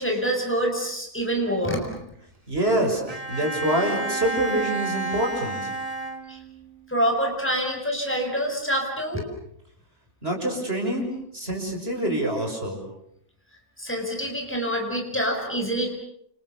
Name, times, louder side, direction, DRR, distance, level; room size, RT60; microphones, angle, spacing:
voice 1, 0.0-1.9 6.3-6.4 6.9-9.2 13.8-15.9, equal, 10° left, 2 dB, 6.6 m, -26 dB
voice 2, 2.5-3.0 3.3-5.7 10.2-11.1 11.3-12.8, right 1 dB, 45° right, 2 dB, 6.9 m, -25 dB
Bowed string instrument, 3.1-6.7, right 2 dB, 25° right, 2.3 m, -31 dB
29.5 x 29.0 x 6.9 m, 0.72 s
omnidirectional pair, 1.5 m